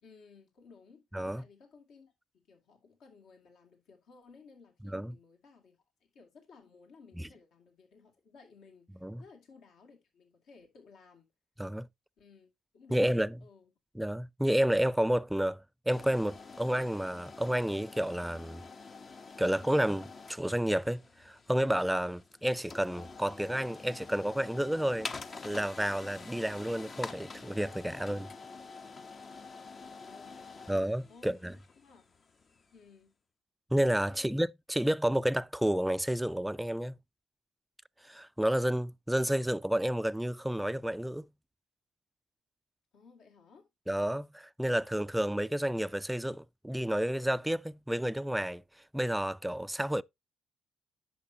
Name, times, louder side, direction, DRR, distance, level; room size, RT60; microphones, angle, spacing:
voice 1, 0.0-1.1 1.4-5.8 6.1-11.3 12.2-13.7 29.8-30.8 31.1-32.0 32.7-33.2 34.1-34.3 42.9-43.7, left 4 dB, 65° left, 2.2 m, -58 dB
voice 2, 12.9-13.3 14.0-18.6 19.4-25.1 25.4-28.3 30.7-31.5 33.7-36.9 38.1-41.2 43.9-48.6 48.9-50.0, right 1 dB, 5° right, 0.4 m, -30 dB
sound 1, 15.9-32.8, left 4 dB, 40° left, 1.0 m, -47 dB
10.5 x 6.7 x 2.7 m
hypercardioid pair, 50°, 0 cm